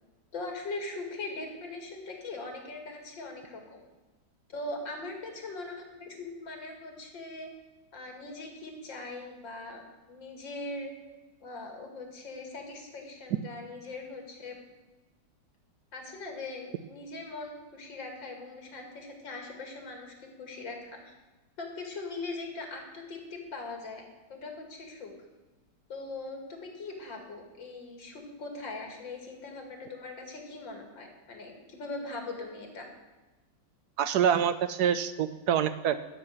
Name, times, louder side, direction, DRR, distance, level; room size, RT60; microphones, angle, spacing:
voice 1, 0.3-3.8 4.5-7.5 7.9-9.8 10.1-10.9 11.4-14.6 15.9-21.1 21.6-25.1 25.9-32.9, left 3 dB, 80° left, 3 dB, 3.1 m, -41 dB
voice 2, 34.0-36.0, right 8 dB, 70° right, 12 dB, 1.1 m, -26 dB
12.5 x 6.1 x 9.6 m, 1.1 s
omnidirectional pair, 2.0 m